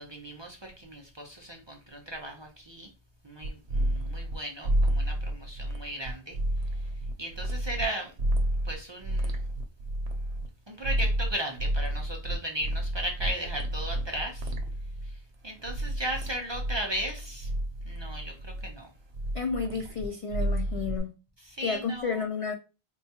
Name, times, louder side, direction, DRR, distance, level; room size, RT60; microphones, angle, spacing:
voice 1, 0.0-2.9 3.2-6.4 7.2-8.1 8.6-9.3 10.7-14.5 15.4-17.5 17.9-18.9 21.5-22.2, right 1 dB, 35° right, 0.5 m, -36 dB
sound 1, 3.4-4.3 4.6-7.8 8.2-10.5 10.8-15.2 15.6-18.7 19.1-21.0, right 1 dB, 80° right, 0.9 m, -30 dB
voice 2, 19.3-21.1 21.6-22.5, left 5 dB, 60° left, 0.3 m, -31 dB
4.4 x 2.3 x 2.8 m
omnidirectional pair, 1.1 m